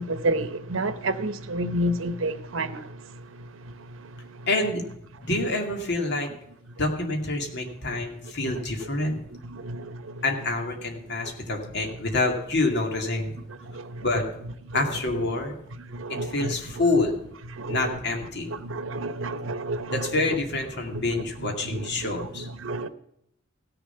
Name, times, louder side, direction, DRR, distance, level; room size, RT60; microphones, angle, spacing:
voice 1, 0.0-2.9 9.5-10.0 13.7-14.0 15.9-16.5 17.6-17.8 18.6-20.0 21.7-22.1 22.6-22.9, right 1 dB, 75° right, 0.9 m, -29 dB
voice 2, 4.5-4.8 5.2-6.3 6.8-9.2 10.2-13.4 14.0-14.2 14.7-15.6 16.2-17.2 17.7-18.5 19.9-22.5, left 2 dB, 60° left, 2.4 m, -27 dB
17.0 x 6.9 x 5.7 m
head